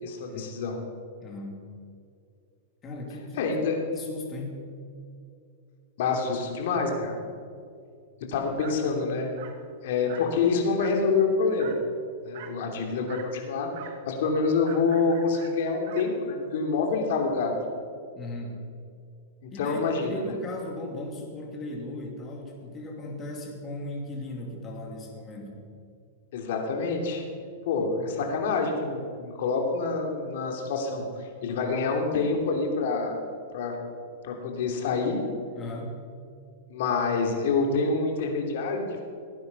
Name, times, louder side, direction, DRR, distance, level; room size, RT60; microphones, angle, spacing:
voice 1, 0.0-0.8 3.4-3.8 6.0-7.2 8.3-9.3 9.8-11.7 12.2-13.7 14.1-17.5 19.6-20.2 26.3-27.2 27.6-33.1 33.5-33.8 34.2-35.2 36.7-39.0, left 4 dB, 65° left, 2 dB, 2.9 m, -27 dB
voice 2, 1.2-1.6 2.8-3.5 3.9-4.6 18.1-18.6 19.5-25.6 35.5-36.0, left 1 dB, 25° left, 1 dB, 2.8 m, -37 dB
Dog, 8.6-8.8 9.4-9.6 10.1-10.4 10.8-11.1 11.6-11.8 12.3-12.6 13.1-13.4 13.7-14.0 14.7-16.1, right 8 dB, 60° right, 1.6 m, -44 dB
17.5 x 9.5 x 5.6 m, 2.3 s
supercardioid pair, 145°, 0 cm